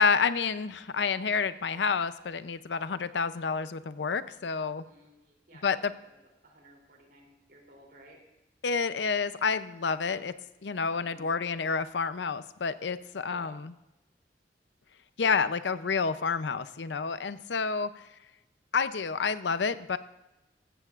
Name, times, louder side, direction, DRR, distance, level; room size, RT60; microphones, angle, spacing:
voice 1, 0.0-4.8 5.6-5.9 8.6-10.3 10.6-13.7 15.2-18.0 18.7-20.0, left 5 dB, 90° left, 13 dB, 0.6 m, -29 dB
voice 2, 4.8-6.2 6.4-8.2 13.2-13.6, right 1 dB, 55° right, 0 dB, 3.2 m, -56 dB
15.5 x 14.0 x 2.5 m, 0.95 s
head